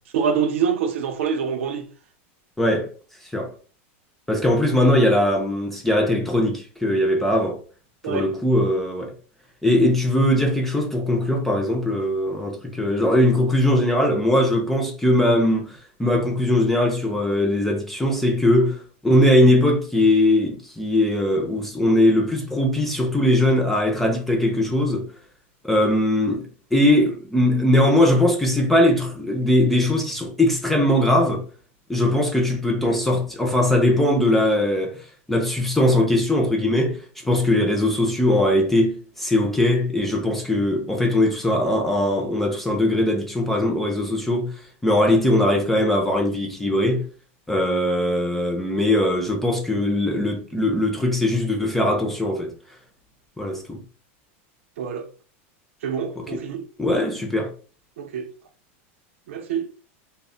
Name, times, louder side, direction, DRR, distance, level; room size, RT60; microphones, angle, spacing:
voice 1, 0.1-1.9 8.0-8.3 54.8-55.0 55.8-56.6 58.0-58.3 59.3-59.6, right 7 dB, 75° right, 0.5 m, -25 dB
voice 2, 2.6-2.9 3.3-3.5 4.3-7.6 8.0-9.1 9.6-25.1 25.6-31.4 31.9-35.0 35.3-37.0 37.2-44.6 44.8-47.0 47.5-52.5 53.4-53.8 56.2-56.4 56.8-57.5, left 1 dB, 5° left, 0.3 m, -20 dB
2.1 x 2.0 x 3.6 m
supercardioid pair, 180°, 7 cm